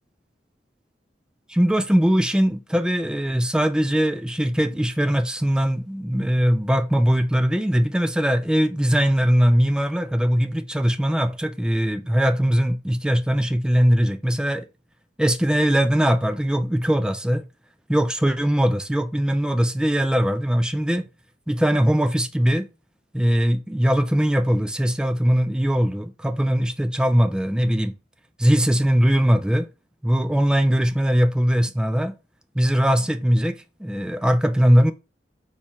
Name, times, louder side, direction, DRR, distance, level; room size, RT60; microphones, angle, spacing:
voice 1, 1.5-14.7 15.2-17.4 17.9-21.1 21.5-22.7 23.1-27.9 28.4-29.7 30.0-32.1 32.5-34.9, equal, 5° right, 0.3 m, -20 dB
4.3 x 2.4 x 4.3 m
head